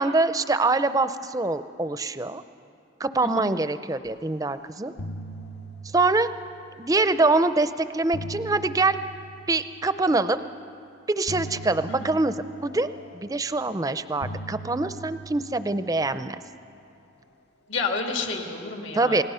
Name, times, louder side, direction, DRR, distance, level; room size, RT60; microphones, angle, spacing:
voice 1, 0.0-2.4 3.0-4.9 5.9-6.3 6.8-9.0 9.5-10.4 11.1-12.4 12.6-12.9 13.1-16.4 18.9-19.2, right 2 dB, 20° right, 12 dB, 0.5 m, -24 dB
sound 1, 4.3-4.6 4.8-7.1 7.8-10.3 11.3-13.7 14.2-16.8, right 1 dB, 55° left, 0.8 m, -41 dB
voice 2, 17.7-19.2, left 4 dB, 75° left, 3 dB, 2.3 m, -30 dB
28.5 x 19.5 x 5.6 m, 2.6 s
head